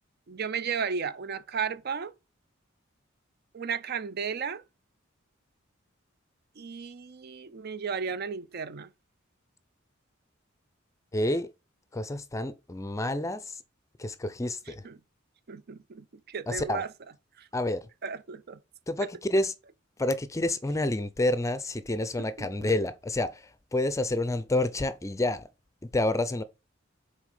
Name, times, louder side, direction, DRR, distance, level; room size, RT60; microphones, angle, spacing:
voice 1, 0.3-2.1 3.5-4.6 6.6-8.9 14.8-14.9 15.5-16.9 17.4-17.5 18.0-18.6 22.2-22.7, right 6 dB, 50° right, 0.5 m, -34 dB
voice 2, 11.1-11.5 11.9-13.6 14.0-14.9 16.5-16.8 17.5-17.8 18.9-19.5 20.0-25.5 25.8-26.4, left 1 dB, 15° left, 0.5 m, -29 dB
6.0 x 4.1 x 5.4 m
head